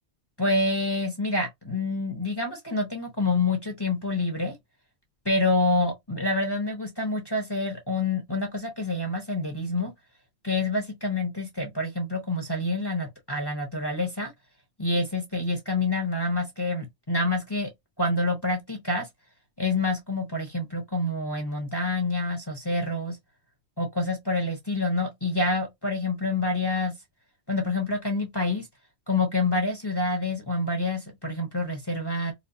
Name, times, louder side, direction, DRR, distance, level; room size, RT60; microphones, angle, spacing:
voice 1, 0.4-4.5 5.2-9.9 10.4-14.3 14.8-17.7 18.0-19.1 19.6-23.2 23.8-26.9 27.5-28.7 29.1-32.3, left 2 dB, 20° left, 1.0 m, -27 dB
4.4 x 2.1 x 2.6 m
omnidirectional pair, 1.2 m